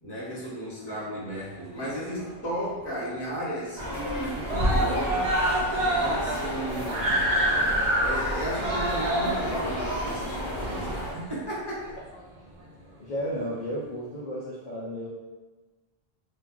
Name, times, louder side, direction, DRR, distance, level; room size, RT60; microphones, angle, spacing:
voice 1, 0.0-5.4 5.8-7.3 8.0-11.9, equal, 25° left, -7 dB, 0.9 m, -34 dB
Screaming, 1.6-2.5 2.9-3.0 3.3-3.4 3.7-4.2 4.5-11.3 12.1-12.2, right 1 dB, 50° right, 0.4 m, -27 dB
sound 1, 3.8-11.1, equal, 30° right, 0.8 m, -32 dB
voice 2, 13.0-15.1, equal, 55° left, -6 dB, 0.6 m, -33 dB
2.4 x 2.3 x 3.6 m, 1.3 s
omnidirectional pair, 1.0 m